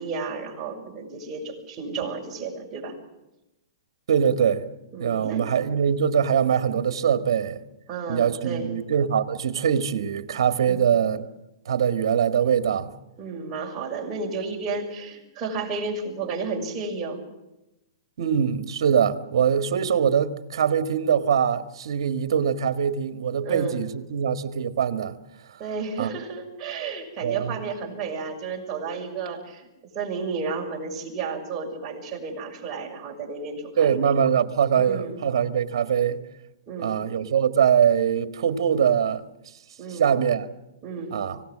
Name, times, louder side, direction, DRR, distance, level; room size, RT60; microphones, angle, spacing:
voice 1, 0.0-3.0 4.9-5.4 7.9-8.7 10.6-10.9 13.2-17.2 23.4-23.8 25.6-29.7 29.9-34.2 34.7-35.2 36.7-37.0 39.8-40.1 40.8-41.2, right 4 dB, 20° right, 6.3 m, -32 dB
voice 2, 4.1-4.6 5.0-7.6 8.1-11.3 11.7-12.9 18.2-25.2 26.0-26.1 27.2-27.5 33.8-36.2 36.8-39.2 39.9-40.5 41.1-41.4, right 8 dB, 70° right, 1.7 m, -23 dB
25.5 x 17.5 x 7.5 m
hypercardioid pair, 155°, 3 cm